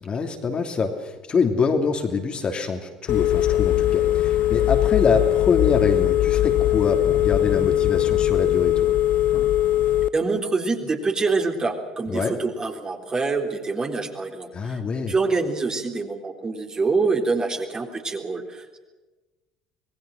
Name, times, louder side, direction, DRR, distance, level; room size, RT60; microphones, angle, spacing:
voice 1, 0.0-8.9 12.1-12.3 14.5-15.1, left 5 dB, 35° left, 4 dB, 2.9 m, -25 dB
Telephone, 3.1-10.1, left 13 dB, 55° left, 0.8 m, -20 dB
voice 2, 10.1-14.8 15.1-18.8, right 3 dB, 25° right, 3 dB, 3.6 m, -25 dB
26.0 x 20.5 x 6.5 m, 1.2 s
figure-of-eight pair, 60°, 3 cm